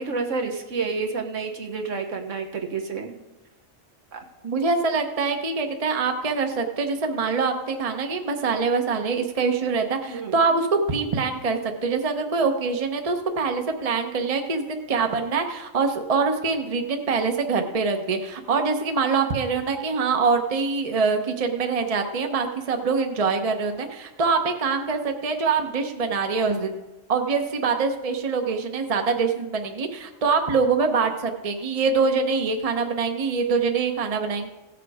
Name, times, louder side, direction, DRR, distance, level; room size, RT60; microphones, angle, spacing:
voice 1, 0.0-3.2 4.1-4.2 10.1-10.4, right 4 dB, 70° right, 4 dB, 1.5 m, -29 dB
voice 2, 4.4-26.7 27.1-34.5, right 4 dB, 30° right, 5 dB, 0.9 m, -24 dB
16.5 x 7.1 x 4.8 m, 1.0 s
omnidirectional pair, 1.4 m